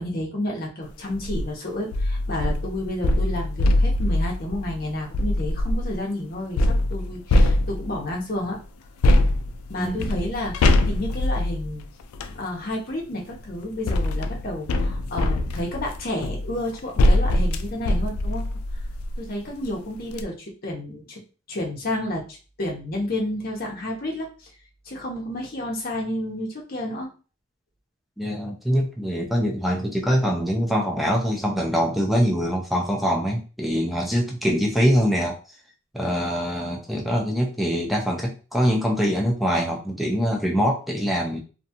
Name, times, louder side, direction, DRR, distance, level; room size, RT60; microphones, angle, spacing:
voice 1, 0.0-8.6 9.7-11.8 12.3-18.4 19.2-21.2 21.5-24.5 24.9-27.1, left 1 dB, 45° left, 0 dB, 0.7 m, -30 dB
sound 1, 1.1-1.4 1.9-6.0 6.6-8.1 9.0-12.4 13.3-19.3 19.7-19.8 20.1-20.2, left 1 dB, 90° left, 0.3 m, -23 dB
voice 2, 9.8-10.2 28.2-35.4 35.9-41.4, equal, ahead, -1 dB, 0.4 m, -23 dB
2.6 x 2.3 x 2.7 m, 0.36 s
head